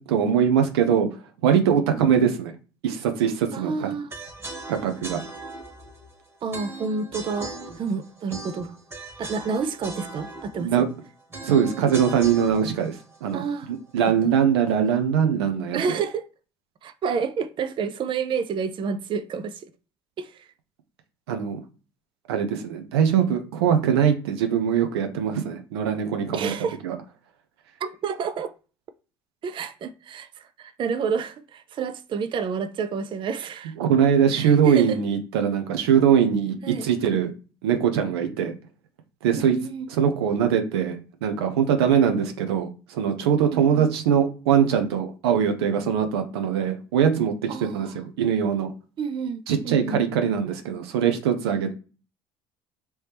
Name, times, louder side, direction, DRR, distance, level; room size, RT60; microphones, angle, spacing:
voice 1, 0.1-1.1 1.4-2.5 2.8-3.9 4.7-5.2 10.6-10.9 11.4-13.4 13.9-15.8 21.3-21.6 22.3-26.5 26.8-26.9 33.8-37.3 37.6-38.5 39.2-39.6 39.9-47.3 47.7-48.7 49.5-51.7, right 8 dB, 80° right, 0.6 m, -22 dB
voice 2, 3.5-4.1 6.4-8.7 9.2-10.9 13.3-13.7 14.0-14.1 15.7-16.3 16.8-19.7 20.2-20.5 26.3-26.8 27.8-28.5 29.4-33.7 34.3-35.0 36.6-36.9 39.4-39.9 43.5-43.9 47.5-47.9 49.0-50.0, right 5 dB, 40° right, 0.4 m, -29 dB
sound 1, 4.1-14.2, right 2 dB, 20° right, 1.3 m, -39 dB
3.1 x 2.8 x 3.4 m
hypercardioid pair, 65°, 13 cm